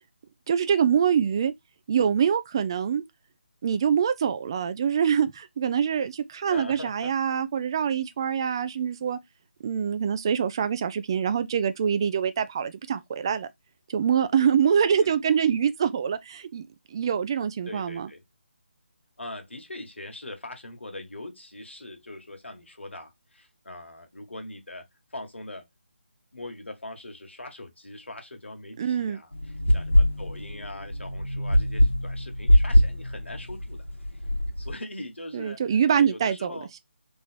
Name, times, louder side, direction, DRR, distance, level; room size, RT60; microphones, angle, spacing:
voice 1, 0.5-1.5 1.9-3.0 3.6-9.2 9.6-13.5 13.9-16.6 16.9-18.1 28.8-29.2 35.3-36.5, right 7 dB, 20° right, 0.3 m, -24 dB
voice 2, 6.5-7.1 15.0-15.1 17.7-18.2 19.2-24.9 25.1-25.7 26.3-29.3 29.7-33.9 34.1-34.2 34.6-36.7, left 2 dB, 70° left, 1.4 m, -41 dB
sound 1, 29.3-34.7, left 1 dB, 85° left, 1.2 m, -23 dB
3.5 x 3.0 x 4.2 m
figure-of-eight pair, 155°, 7 cm